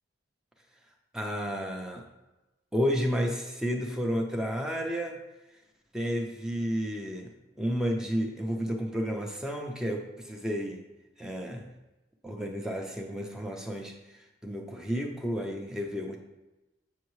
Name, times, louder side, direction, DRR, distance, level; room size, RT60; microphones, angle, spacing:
voice 1, 1.1-2.0 2.7-5.2 5.9-7.3 7.6-10.9 11.2-11.7 12.2-16.2, equal, 5° right, 1 dB, 0.6 m, -31 dB
8.2 x 5.5 x 3.1 m, 1.0 s
head